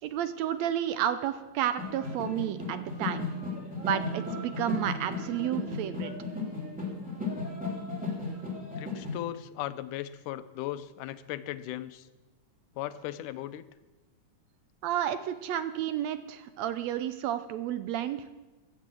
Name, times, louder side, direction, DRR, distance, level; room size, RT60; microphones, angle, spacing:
voice 1, 0.0-3.3 3.8-6.1 14.8-18.3, right 11 dB, 75° right, 11 dB, 1.6 m, -31 dB
sound 1, 1.8-9.2, left 3 dB, 5° right, 2.6 m, -35 dB
voice 2, 8.8-12.1 12.8-13.6, left 13 dB, 85° left, 13 dB, 2.2 m, -37 dB
14.5 x 8.5 x 7.6 m, 1.1 s
omnidirectional pair, 3.6 m